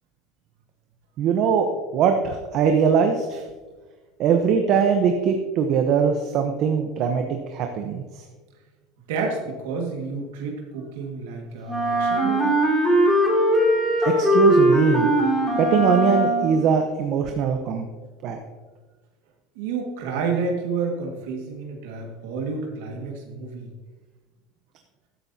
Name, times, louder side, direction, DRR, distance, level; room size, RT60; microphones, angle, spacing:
voice 1, 1.2-3.4 4.2-8.2 14.0-15.1 15.6-17.8 18.2-18.4, right 7 dB, 50° right, 5 dB, 0.9 m, -21 dB
voice 2, 9.1-12.6 19.6-23.7, right 4 dB, 85° right, 1 dB, 1.8 m, -30 dB
Wind instrument woodwind instrument, 11.7-16.7, equal, 5° left, 2.6 m, -20 dB
13.0 x 10.0 x 2.8 m, 1.3 s
supercardioid pair, 140°, 0 cm